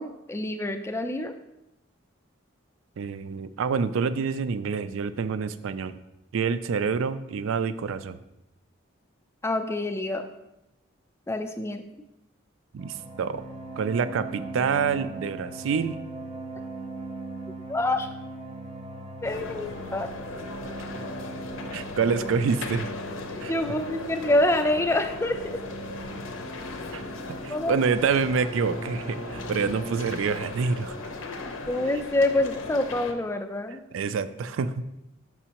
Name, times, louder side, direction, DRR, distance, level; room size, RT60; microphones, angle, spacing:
voice 1, 0.0-1.3 9.4-10.3 11.3-11.8 17.7-18.1 19.2-20.1 23.5-25.6 27.5-27.8 31.7-33.8, left 1 dB, 15° left, 7 dB, 0.3 m, -26 dB
voice 2, 3.0-6.0 6.3-8.2 12.7-13.4 13.8-16.0 21.7-22.9 23.4-23.5 26.9-27.0 27.4-31.0 33.9-34.7, right 5 dB, 75° right, 13 dB, 0.3 m, -27 dB
sound 1, 12.8-30.2, right 2 dB, 30° right, 0.6 m, -40 dB
Exhibition hall, 19.2-33.1, left 3 dB, 75° left, 0.6 m, -37 dB
6.2 x 6.0 x 2.9 m, 0.89 s
head